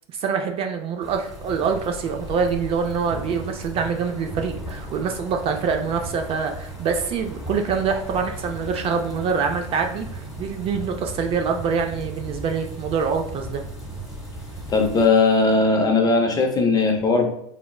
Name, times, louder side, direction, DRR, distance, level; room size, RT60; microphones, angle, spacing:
voice 1, 0.1-13.6, right 6 dB, 35° right, 4 dB, 0.3 m, -25 dB
sound 1, 1.0-15.1, equal, ahead, 1.2 m, -36 dB
voice 2, 14.7-17.3, left 3 dB, 20° left, 4 dB, 0.5 m, -18 dB
4.3 x 2.0 x 2.3 m, 0.74 s
supercardioid pair, 120°, 18 cm